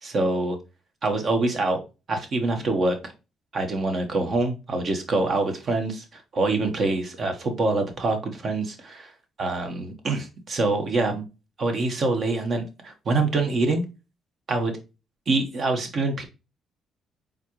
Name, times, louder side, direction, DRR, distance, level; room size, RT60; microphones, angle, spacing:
voice 1, 0.0-0.6 1.0-1.8 2.1-3.1 3.5-9.1 9.4-11.2 11.6-13.8 14.5-14.7 15.3-16.2, right 2 dB, 50° right, 5 dB, 1.3 m, -25 dB
4.4 x 3.7 x 3.0 m, 0.28 s
cardioid pair, 90°, 0 cm